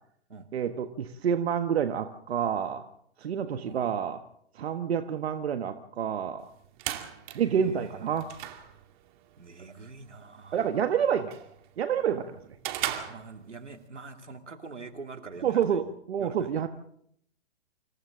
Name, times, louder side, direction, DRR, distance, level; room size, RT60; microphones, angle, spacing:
voice 1, 0.5-2.8 3.2-4.2 4.5-6.5 7.3-8.3 10.5-11.4 11.8-12.4 15.4-16.7, right 8 dB, 60° right, 8 dB, 1.5 m, -28 dB
sound 1, 6.4-13.9, right 12 dB, 45° right, 2.4 m, -40 dB
voice 2, 7.2-7.8 9.4-10.6 12.9-15.9 16.2-16.6, right 3 dB, 85° right, 6 dB, 2.6 m, -45 dB
29.0 x 26.5 x 3.8 m, 0.68 s
figure-of-eight pair, 115°, 34 cm